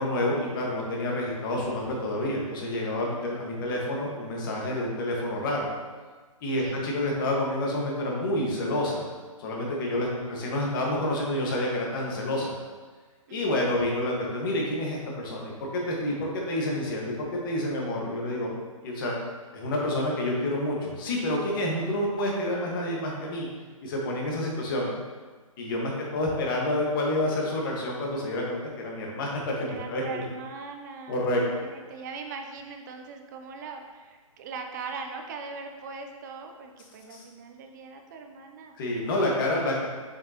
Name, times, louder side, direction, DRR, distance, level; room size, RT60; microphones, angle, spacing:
voice 1, 0.0-5.7 6.4-9.0 9.4-12.5 13.3-18.5 18.8-19.1 19.5-23.5 23.8-25.0 25.6-30.2 31.1-31.4 37.1-37.2 38.7-39.8, left 1 dB, 40° left, -2 dB, 1.6 m, -28 dB
voice 2, 10.0-10.9 13.3-13.7 25.8-26.3 29.6-38.7, right 4 dB, 30° right, 4 dB, 0.7 m, -41 dB
7.1 x 5.7 x 3.0 m, 1.4 s
hypercardioid pair, 150°, 18 cm